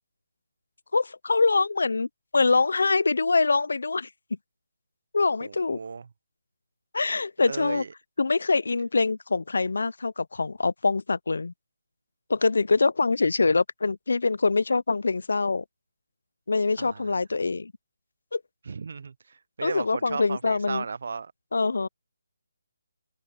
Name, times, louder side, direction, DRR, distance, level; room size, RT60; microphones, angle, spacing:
voice 1, 0.9-2.1 2.3-4.1 5.1-5.8 6.9-7.8 8.2-11.5 12.3-15.6 16.5-17.7 18.3-18.4 19.6-20.8 21.5-21.9, left 3 dB, 75° left, 0.4 m, -24 dB
voice 2, 5.4-6.1 7.4-7.9 16.8-17.1 18.7-21.3, right 5 dB, 55° right, 0.4 m, -35 dB
hypercardioid pair, 170°, 0 cm